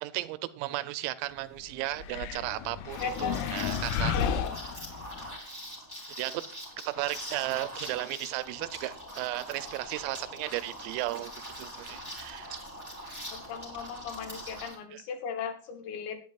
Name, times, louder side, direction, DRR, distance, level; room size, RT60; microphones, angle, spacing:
voice 1, 0.0-4.2 6.2-6.4 6.9-11.3 11.6-12.6 14.9-15.0, right 16 dB, 90° right, 14 dB, 3.4 m, -35 dB
sound 1, 2.0-5.3, left 8 dB, 90° left, 3.4 m, -33 dB
Liquid, 2.9-14.8, equal, 5° left, 1.7 m, -43 dB
voice 2, 3.0-3.5 4.1-4.5 13.3-16.2, left 6 dB, 70° left, 6 dB, 3.2 m, -37 dB
16.0 x 9.0 x 2.4 m, 0.41 s
omnidirectional pair, 5.9 m